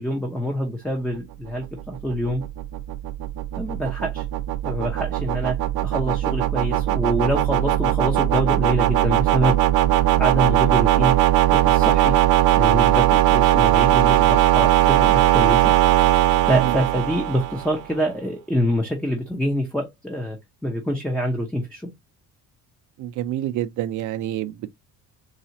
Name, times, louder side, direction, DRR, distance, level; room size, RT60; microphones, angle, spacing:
voice 1, 0.0-2.4 3.5-4.2 4.6-5.6 5.8-9.6 10.2-11.1 11.5-12.2 12.6-15.8 16.5-20.4 20.6-21.9, equal, 5° left, 0.6 m, -25 dB
sound 1, 1.6-17.8, right 13 dB, 90° right, 0.7 m, -19 dB
voice 2, 23.0-24.7, right 12 dB, 55° right, 0.5 m, -28 dB
4.1 x 2.4 x 2.8 m
cardioid pair, 145°, 35 cm